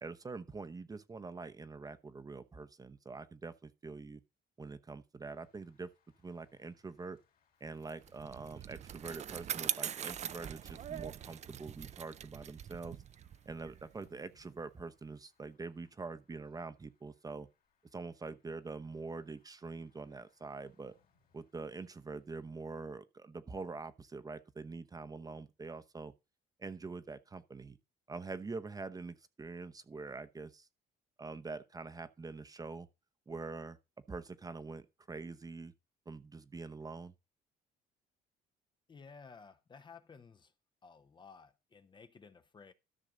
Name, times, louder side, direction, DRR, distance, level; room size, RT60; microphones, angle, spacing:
voice 1, 0.0-4.2 4.6-5.9 6.2-7.2 7.6-13.0 13.5-17.5 17.9-20.9 21.3-26.1 26.6-27.8 28.1-30.7 31.2-32.9 33.3-33.8 34.1-35.7 36.1-37.1, right 4 dB, 20° right, 0.9 m, -45 dB
sound 1, 5.3-22.6, left 4 dB, 60° left, 2.7 m, -77 dB
Bicycle, 7.9-14.6, right 9 dB, 40° right, 0.5 m, -42 dB
voice 2, 38.9-40.5 40.8-42.7, left 5 dB, 25° left, 0.8 m, -55 dB
13.5 x 6.1 x 3.9 m
cardioid pair, 110°, 17 cm